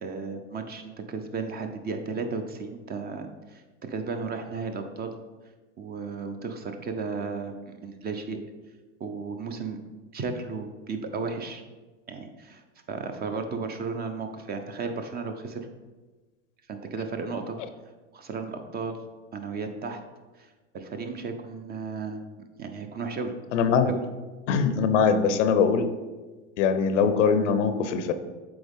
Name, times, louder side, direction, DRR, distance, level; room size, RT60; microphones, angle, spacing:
voice 1, 0.0-5.1 5.8-8.4 9.0-9.8 10.1-11.6 12.1-12.6 12.9-15.7 16.7-17.6 18.1-19.0 19.3-20.0 20.4-20.5 20.7-22.2 22.6-23.3 23.9-24.0, right 4 dB, 25° right, 6 dB, 0.7 m, -34 dB
voice 2, 23.5-23.9 24.5-25.9 26.6-28.1, left 6 dB, 80° left, 10 dB, 0.7 m, -22 dB
7.9 x 3.9 x 3.6 m, 1.3 s
hypercardioid pair, 105°, 36 cm